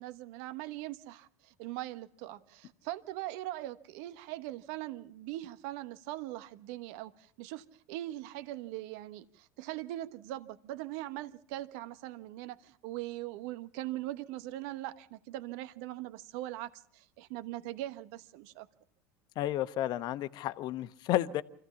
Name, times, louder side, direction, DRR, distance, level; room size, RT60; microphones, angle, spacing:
voice 1, 0.0-18.7, right 15 dB, 70° right, 1.1 m, -41 dB
voice 2, 19.4-21.4, left 13 dB, 55° left, 1.0 m, -32 dB
25.5 x 15.0 x 7.1 m
supercardioid pair, 100°, 9 cm